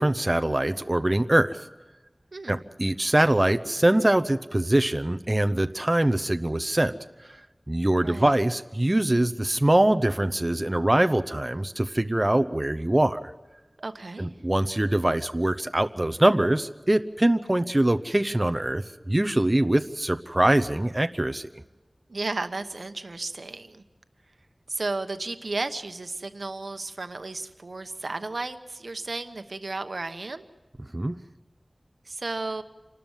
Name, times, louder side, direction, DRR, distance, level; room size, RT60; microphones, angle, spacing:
voice 1, 0.0-1.6 2.5-6.9 7.7-13.2 14.2-21.5 30.9-31.1, right 1 dB, 30° right, 9 dB, 0.8 m, -23 dB
voice 2, 8.0-8.4 13.8-14.3 22.1-23.8 24.7-30.5 32.1-32.6, right 3 dB, 80° right, 9 dB, 1.0 m, -33 dB
27.5 x 13.0 x 9.0 m, 1.1 s
wide cardioid pair, 50°, 0 cm